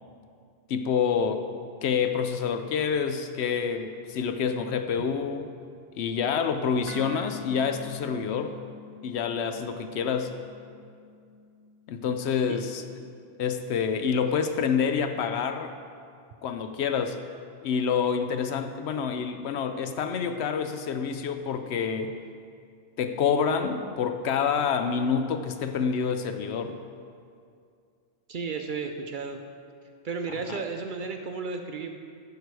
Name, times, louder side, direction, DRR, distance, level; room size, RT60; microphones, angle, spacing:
voice 1, 0.7-1.5 1.8-5.5 6.0-8.5 9.0-10.4 11.9-12.8 13.4-15.7 16.4-17.2 17.6-22.2 23.0-26.8, left 6 dB, 70° left, 8 dB, 0.8 m, -27 dB
sound 1, 6.9-15.0, right 1 dB, 85° right, 1.0 m, -48 dB
voice 2, 28.3-29.4 30.0-32.0, right 4 dB, 55° right, 5 dB, 0.6 m, -33 dB
10.5 x 6.6 x 4.7 m, 2.3 s
omnidirectional pair, 1.2 m